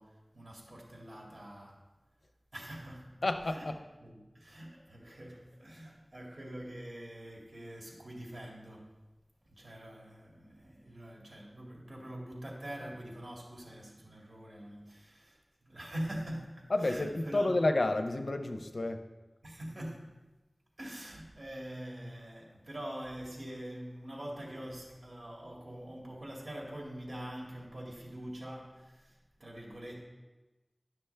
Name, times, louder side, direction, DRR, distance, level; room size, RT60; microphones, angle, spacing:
voice 1, 0.0-1.9 2.5-3.2 3.5-3.7 4.0-9.0 9.5-17.5 19.4-20.3 20.8-30.0, right 1 dB, 60° right, -2 dB, 2.1 m, -44 dB
voice 2, 3.2-3.7 16.7-19.0, left 2 dB, 85° left, 6 dB, 0.6 m, -30 dB
11.0 x 6.0 x 3.3 m, 1.2 s
wide cardioid pair, 50°, 0 cm